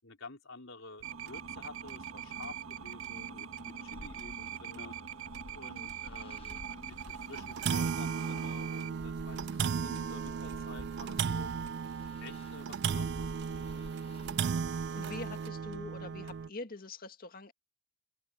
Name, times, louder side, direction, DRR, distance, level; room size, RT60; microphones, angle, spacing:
voice 1, 0.0-4.9 5.5-11.5 12.2-13.9, left 3 dB, 70° left, 4.8 m, -50 dB
sound 1, 1.0-8.9, right 8 dB, 85° right, 1.7 m, -42 dB
sound 2, 1.3-1.5 1.9-2.0 2.4-2.5 3.6-3.7 4.2-4.3 4.7-4.8 5.3-5.4 6.5-6.7 7.0-7.1 7.3-16.5, right 6 dB, 55° right, 0.4 m, -35 dB
sound 3, 3.2-15.0, left 1 dB, 30° left, 1.1 m, -53 dB
voice 2, 14.9-17.5, left 3 dB, 45° left, 2.2 m, -44 dB
open air
head